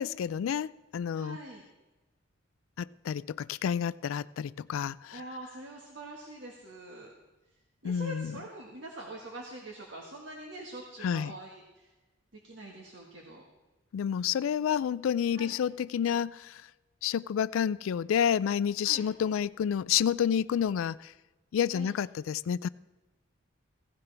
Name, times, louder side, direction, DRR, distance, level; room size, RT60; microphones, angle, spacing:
voice 1, 0.0-1.4 2.8-5.2 7.8-8.4 11.0-11.3 13.9-16.7 17.0-21.1 21.5-22.7, left 8 dB, 90° left, 0.3 m, -29 dB
voice 2, 1.1-1.6 5.1-7.1 7.8-11.9 12.4-13.5 15.3-15.5 18.8-19.0 21.7-21.9, right 1 dB, 70° right, 1.5 m, -44 dB
16.5 x 15.5 x 3.4 m
head